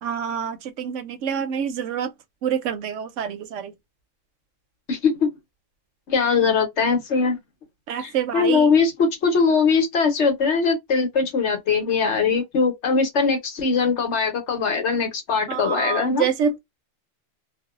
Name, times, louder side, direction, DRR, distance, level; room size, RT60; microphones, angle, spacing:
voice 1, 0.0-2.1 2.4-3.7 7.9-8.7 15.5-16.6, right 7 dB, 70° right, 0.9 m, -26 dB
voice 2, 4.9-5.3 6.1-7.4 8.0-16.3, left 5 dB, 60° left, 1.1 m, -21 dB
2.5 x 2.2 x 2.3 m
omnidirectional pair, 1.3 m